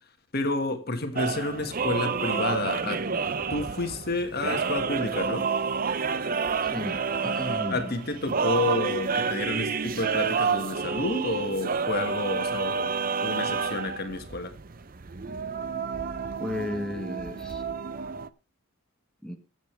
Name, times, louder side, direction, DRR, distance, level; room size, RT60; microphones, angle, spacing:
voice 1, 0.3-3.1 3.5-5.5 7.7-14.5, left 2 dB, 45° left, 1.8 m, -30 dB
sound 1, 1.2-18.3, right 5 dB, 40° right, 0.6 m, -29 dB
voice 2, 6.7-7.9 16.4-17.6 19.2-19.4, left 1 dB, 5° left, 1.2 m, -34 dB
22.0 x 7.9 x 3.3 m
head